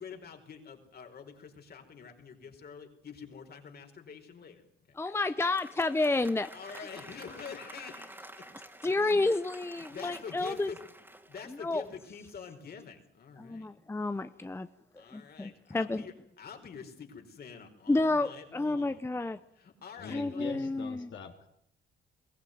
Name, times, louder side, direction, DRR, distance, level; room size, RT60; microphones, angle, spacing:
voice 1, 0.0-5.2 6.5-8.5 8.8-9.2 9.7-10.8 11.3-13.7 15.0-20.6, left 6 dB, 50° left, 4 dB, 4.7 m, -47 dB
voice 2, 5.0-6.9 8.8-10.7 11.6-11.8 13.4-14.7 15.1-16.0 17.9-19.4 20.1-21.1, left 2 dB, 10° left, 11 dB, 0.8 m, -30 dB
Applause, 5.2-12.2, right 1 dB, 10° right, 2.9 m, -51 dB
voice 3, 20.0-21.5, left 6 dB, 70° left, 3 dB, 3.8 m, -43 dB
22.0 x 16.0 x 9.4 m, 0.75 s
cardioid pair, 90°, 20 cm